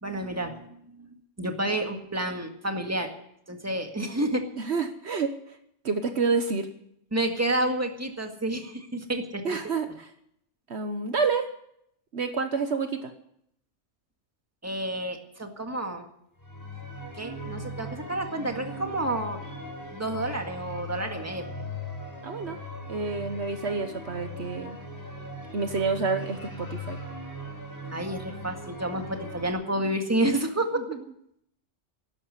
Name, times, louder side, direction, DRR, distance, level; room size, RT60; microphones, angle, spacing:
voice 1, 0.0-1.1 1.4-3.1 3.5-4.4 7.1-9.6 14.6-16.1 17.2-19.4 19.9-21.5 27.9-30.8, right 1 dB, 10° right, 4 dB, 1.8 m, -30 dB
voice 2, 4.6-5.6 5.8-6.7 9.4-10.1 10.7-11.5 12.1-13.1 22.2-22.6 22.9-24.8 25.5-27.0 30.8-31.0, right 4 dB, 65° right, 8 dB, 1.3 m, -29 dB
sound 1, 16.4-29.5, equal, 15° left, 4.1 m, -39 dB
12.5 x 11.5 x 9.7 m, 0.74 s
omnidirectional pair, 1.3 m